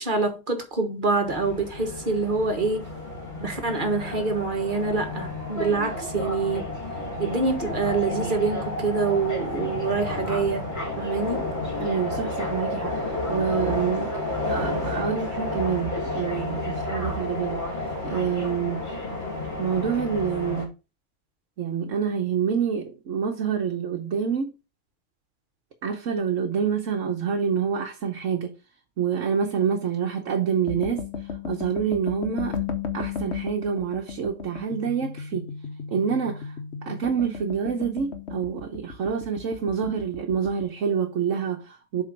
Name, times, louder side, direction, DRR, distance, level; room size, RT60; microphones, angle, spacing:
voice 1, 0.0-2.8 3.4-6.7 7.2-10.6 11.0-11.5, right 4 dB, 45° right, 1.5 m, -26 dB
sound 1, 1.3-20.7, left 2 dB, 40° left, 2.6 m, -31 dB
voice 2, 11.8-14.1 14.4-17.6 18.0-18.9 19.6-20.7 21.6-24.5 25.8-28.5 29.0-32.6 32.9-35.5 35.9-36.5 36.8-42.0, right 7 dB, 85° right, 1.3 m, -27 dB
sound 2, 30.7-40.6, left 6 dB, 60° left, 1.3 m, -35 dB
7.5 x 3.7 x 5.1 m
omnidirectional pair, 1.3 m